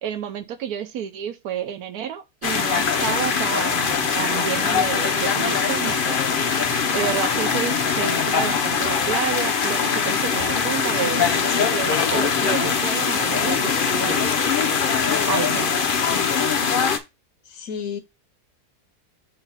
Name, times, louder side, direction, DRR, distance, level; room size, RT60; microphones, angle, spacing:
voice 1, 0.0-6.2 6.9-11.3 11.7-14.4 15.3-15.7, right 8 dB, 80° right, 1.1 m, -30 dB
sound 1, 2.4-17.0, left 6 dB, 45° left, 0.7 m, -22 dB
voice 2, 5.4-6.1 15.1-16.6 17.4-18.0, left 6 dB, 65° left, 1.4 m, -35 dB
6.7 x 2.9 x 5.6 m
omnidirectional pair, 1.7 m